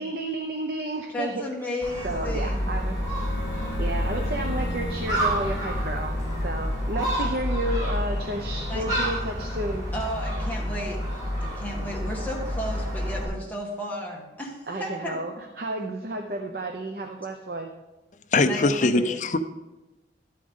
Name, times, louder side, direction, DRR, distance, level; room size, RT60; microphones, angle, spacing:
voice 1, 0.0-1.5 2.0-3.0 3.8-6.2 6.4-9.9 14.7-17.7, right 1 dB, 55° right, 4 dB, 0.7 m, -32 dB
voice 2, 1.1-2.8 8.7-8.8 9.9-15.2 18.4-19.2, equal, 10° left, -3 dB, 1.6 m, -34 dB
Gull seagull, 1.8-13.2, equal, 25° right, 4.1 m, -29 dB
sound 1, 2.1-8.8, left 1 dB, 60° left, 1.3 m, -37 dB
voice 3, 18.3-19.4, left 3 dB, 40° left, 10 dB, 0.5 m, -22 dB
12.0 x 8.5 x 3.7 m, 1.1 s
head